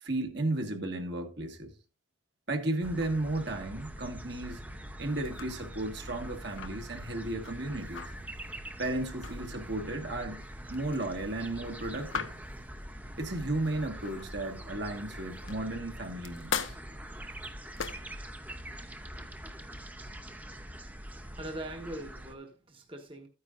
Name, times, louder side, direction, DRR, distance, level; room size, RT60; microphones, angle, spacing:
voice 1, 0.0-1.7 2.5-4.6 5.0-8.1 8.8-10.4 10.7-12.3 13.2-16.8, right 2 dB, 55° right, 1.6 m, -34 dB
sound 1, 2.8-22.3, right 1 dB, 10° right, 0.7 m, -44 dB
sound 2, 5.2-14.5 15.0-18.2, left 6 dB, 80° left, 0.9 m, -41 dB
voice 2, 21.1-23.3, right 1 dB, 25° right, 1.1 m, -42 dB
13.0 x 9.5 x 2.5 m
head